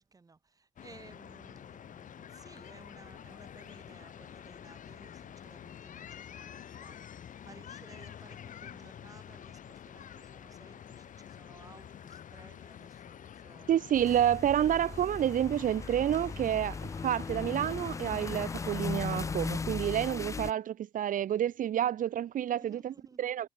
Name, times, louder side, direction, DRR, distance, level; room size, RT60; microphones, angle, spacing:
voice 1, 0.0-7.1 7.4-13.8 22.5-23.3, right 4 dB, 25° right, 3.7 m, -57 dB
sound 1, 0.8-19.5, left 9 dB, 60° left, 5.1 m, -48 dB
voice 2, 13.7-16.8 17.0-23.5, right 10 dB, 65° right, 0.9 m, -29 dB
sound 2, 13.9-20.5, left 4 dB, 20° left, 0.4 m, -37 dB
wide cardioid pair, 155°, 15 cm